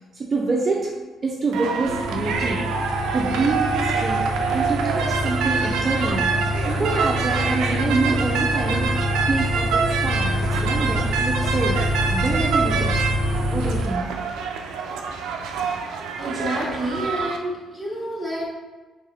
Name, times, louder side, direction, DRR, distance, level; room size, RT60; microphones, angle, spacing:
voice 1, 0.1-0.9 1.2-2.8 3.1-13.0 13.5-14.2, right 3 dB, 35° right, -1 dB, 0.5 m, -26 dB
sound 1, 1.5-17.4, right 5 dB, 90° right, 0.4 m, -26 dB
sound 2, 1.8-13.8, left 1 dB, 75° left, 1.4 m, -26 dB
voice 2, 16.2-18.4, equal, 5° left, -6 dB, 1.5 m, -28 dB
3.5 x 3.1 x 3.3 m, 1.2 s
cardioid pair, 90°, 0 cm